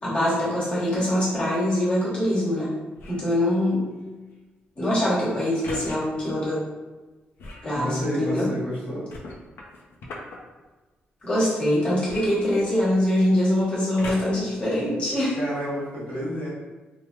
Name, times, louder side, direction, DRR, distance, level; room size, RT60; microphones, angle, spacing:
voice 1, 0.0-2.7 3.1-3.9 4.7-6.6 7.6-8.5 11.2-15.4, left 1 dB, 30° left, -8 dB, 1.1 m, -23 dB
sound 1, 2.9-3.3 5.6-6.0 7.4-7.7 9.1-10.4 12.1-13.0 14.0-14.5 15.2-15.3, left 2 dB, 75° left, 0.5 m, -38 dB
voice 2, 7.7-9.1 15.4-16.5, equal, 50° left, -12 dB, 1.2 m, -30 dB
3.0 x 2.0 x 3.1 m, 1.2 s
wide cardioid pair, 165°, 4 cm